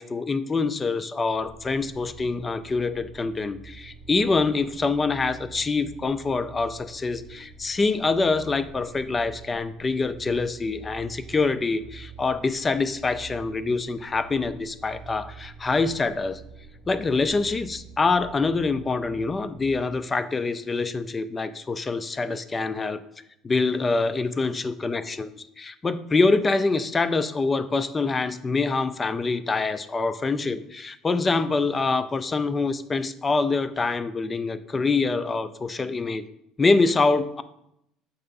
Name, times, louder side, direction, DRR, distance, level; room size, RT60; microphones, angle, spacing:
voice 1, 0.0-16.4 16.9-23.0 23.4-36.2 36.6-37.4, left 3 dB, 20° left, 12 dB, 0.4 m, -25 dB
sound 1, 1.3-19.8, right 4 dB, 55° left, 2.0 m, -46 dB
6.7 x 3.3 x 5.3 m, 0.79 s
cardioid pair, 125°, 0 cm